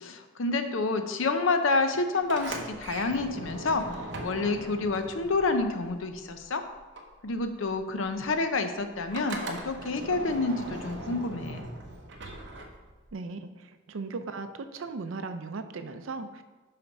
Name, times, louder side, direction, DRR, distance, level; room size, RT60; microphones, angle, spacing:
voice 1, 0.0-6.6 7.2-11.7, left 3 dB, 85° left, 7 dB, 0.7 m, -28 dB
Sliding door, 2.2-6.5 6.7-13.1, right 2 dB, 60° right, 0.9 m, -40 dB
voice 2, 13.1-16.4, right 3 dB, 85° right, 9 dB, 0.5 m, -37 dB
5.7 x 5.1 x 5.3 m, 1.3 s
head